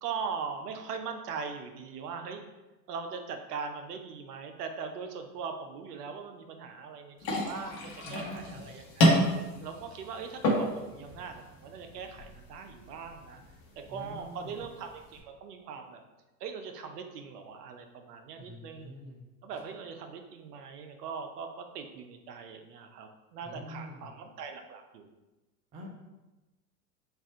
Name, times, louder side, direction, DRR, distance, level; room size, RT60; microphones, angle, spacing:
voice 1, 0.0-2.4 2.9-9.2 9.6-13.4 13.8-16.0 16.4-18.9 19.4-25.1, right 5 dB, 70° right, 5 dB, 0.7 m, -40 dB
sound 1, 7.2-15.2, equal, 40° left, 1.1 m, -31 dB
voice 2, 8.0-8.7 13.9-14.6 18.3-19.2 23.4-24.1 25.7-25.9, left 1 dB, 15° right, -1 dB, 0.3 m, -45 dB
3.4 x 2.4 x 4.3 m, 1.1 s
hypercardioid pair, 100°, 50 cm